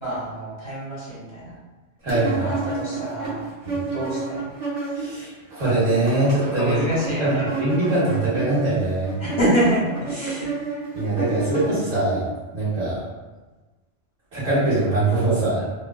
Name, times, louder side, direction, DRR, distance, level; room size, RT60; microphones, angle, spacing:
voice 1, 0.0-1.6 2.2-3.5 3.9-4.5 6.5-7.5 9.2-10.8, right 1 dB, 25° left, -9 dB, 0.9 m, -26 dB
voice 2, 2.0-2.5 3.6-3.8 4.9-6.8 7.2-9.2 10.9-13.0 14.3-15.6, right 2 dB, 80° right, -12 dB, 1.4 m, -22 dB
sound 1, 2.1-5.2 5.5-12.2, right 4 dB, 35° right, 0.7 m, -30 dB
3.5 x 2.3 x 2.3 m, 1.2 s
omnidirectional pair, 1.2 m